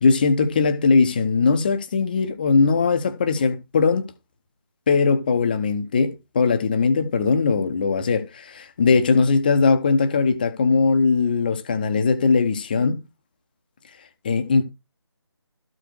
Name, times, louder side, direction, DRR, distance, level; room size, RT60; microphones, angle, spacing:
voice 1, 0.0-4.1 4.9-13.0 14.2-14.6, left 4 dB, 20° left, 0.8 m, -20 dB
13.0 x 5.0 x 4.6 m
figure-of-eight pair, 160°, 14 cm